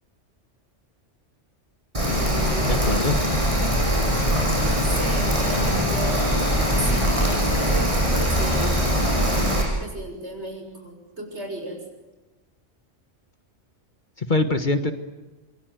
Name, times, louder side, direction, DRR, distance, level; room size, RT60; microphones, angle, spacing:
Rain, 1.9-9.6, equal, 25° right, 8.2 m, -22 dB
voice 1, 2.0-3.1 4.6-11.8, right 1 dB, 65° right, 3 dB, 6.9 m, -34 dB
voice 2, 2.7-3.2 14.2-14.9, left 2 dB, 40° left, 8 dB, 1.6 m, -23 dB
26.5 x 22.5 x 9.3 m, 1.1 s
omnidirectional pair, 1.2 m